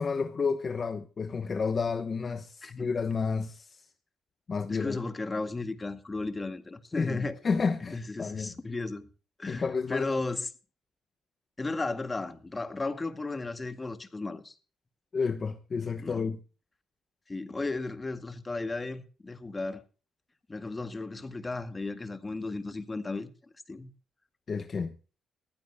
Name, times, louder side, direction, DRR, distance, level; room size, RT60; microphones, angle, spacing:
voice 1, 0.0-3.9 4.5-5.0 7.0-8.5 9.5-10.2 15.1-16.4 24.5-25.0, left 5 dB, 40° left, 1.1 m, -31 dB
voice 2, 4.7-7.4 7.9-9.1 9.4-9.6 9.9-10.5 11.6-14.5 16.0-16.3 17.3-19.8 20.5-23.3 23.7-23.9, left 3 dB, 20° left, 1.9 m, -34 dB
20.0 x 15.0 x 2.3 m
cardioid pair, 90°, 0 cm